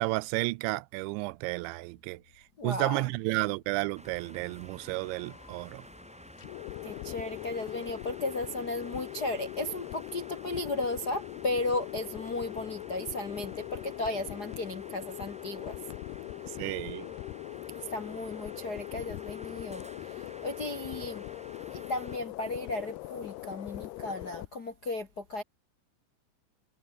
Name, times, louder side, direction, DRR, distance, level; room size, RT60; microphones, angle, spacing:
voice 1, 0.0-2.2 2.6-5.8 16.6-17.1, right 23 dB, 85° right, 2.9 m, -32 dB
voice 2, 2.6-3.1 6.8-15.8 17.7-21.2 21.7-25.4, left 2 dB, 50° left, 1.1 m, -35 dB
sound 1, 3.9-22.2, equal, 5° right, 1.4 m, -51 dB
sound 2, 4.8-24.5, left 18 dB, 75° left, 2.6 m, -42 dB
omnidirectional pair, 5.1 m